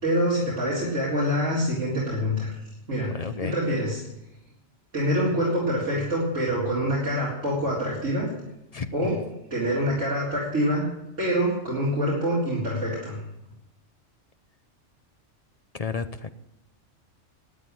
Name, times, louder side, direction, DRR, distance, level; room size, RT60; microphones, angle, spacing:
voice 1, 0.0-2.5 2.9-3.1 3.4-4.0 4.9-8.3 8.9-9.2 9.5-10.8 11.2-13.2, equal, 80° right, -8 dB, 4.4 m, -25 dB
voice 2, 3.1-3.6 8.7-8.9 15.7-16.3, left 5 dB, 40° left, 10 dB, 0.6 m, -31 dB
13.0 x 8.7 x 9.1 m, 0.90 s
omnidirectional pair, 1.3 m